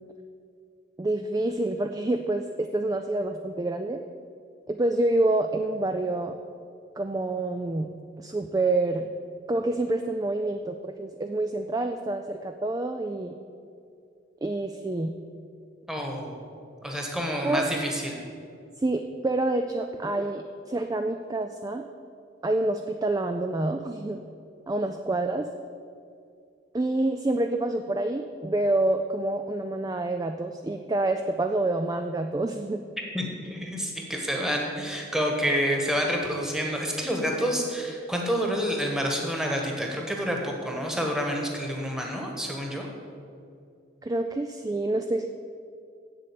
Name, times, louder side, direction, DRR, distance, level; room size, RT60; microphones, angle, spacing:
voice 1, 1.0-4.0 4.7-6.4 7.0-7.9 8.2-9.1 9.5-13.3 14.4-15.1 17.3-17.7 18.8-21.8 22.4-24.2 24.7-25.5 26.7-32.8 44.0-45.3, right 2 dB, 20° right, 6 dB, 0.3 m, -27 dB
voice 2, 15.9-16.5 16.8-18.2 33.1-42.9, equal, 5° right, 0 dB, 1.4 m, -28 dB
7.7 x 7.6 x 8.5 m, 2.4 s
head